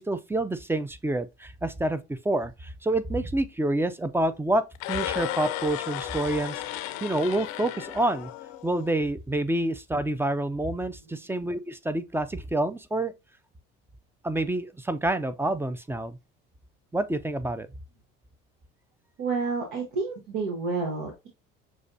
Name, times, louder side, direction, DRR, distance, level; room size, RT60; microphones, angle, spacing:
voice 1, 0.0-4.6 4.9-6.6 7.0-8.3 8.6-13.1 14.2-16.2 16.9-17.7, right 1 dB, 10° right, 0.4 m, -28 dB
sound 1, 4.7-8.9, left 14 dB, 75° left, 0.6 m, -34 dB
voice 2, 19.2-21.3, right 4 dB, 75° right, 1.3 m, -29 dB
6.2 x 2.3 x 2.7 m
supercardioid pair, 75°, 29 cm